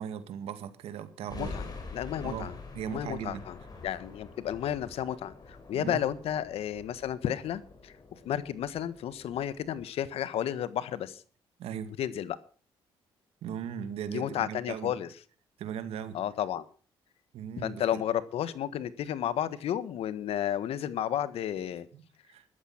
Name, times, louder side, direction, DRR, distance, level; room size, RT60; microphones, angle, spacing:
voice 1, 0.0-1.6 2.2-3.5 5.7-6.0 11.6-11.9 13.4-14.9 15.6-16.2 17.3-18.0 21.9-22.5, right 8 dB, 80° right, 2.1 m, -38 dB
sound 1, 1.3-9.8, left 3 dB, 40° left, 5.8 m, -46 dB
voice 2, 1.9-2.5 2.9-3.6 3.8-7.9 8.2-11.2 12.0-12.4 14.1-15.1 16.1-16.6 17.6-21.9, left 10 dB, 75° left, 1.4 m, -32 dB
14.5 x 12.5 x 6.0 m
cardioid pair, 80°, 10 cm